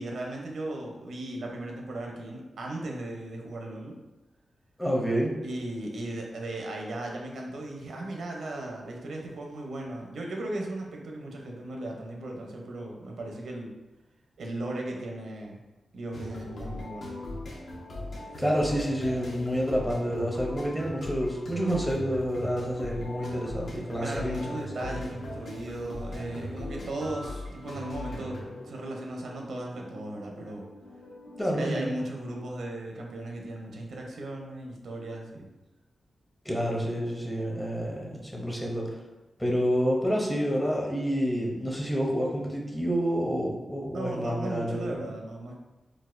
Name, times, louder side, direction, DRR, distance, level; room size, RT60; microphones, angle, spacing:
voice 1, 0.0-4.0 5.4-13.7 14.4-15.6 15.9-17.2 24.0-30.7 31.4-35.5 38.3-38.7 43.9-45.6, right 1 dB, 80° right, 0 dB, 0.6 m, -37 dB
voice 2, 4.8-5.4 18.4-25.0 31.4-31.9 36.4-39.0 39.4-44.9, equal, 5° left, -2 dB, 0.6 m, -28 dB
sound 1, 16.1-31.4, left 1 dB, 70° left, 0.8 m, -40 dB
4.0 x 2.4 x 2.5 m, 1.1 s
wide cardioid pair, 130°, 0 cm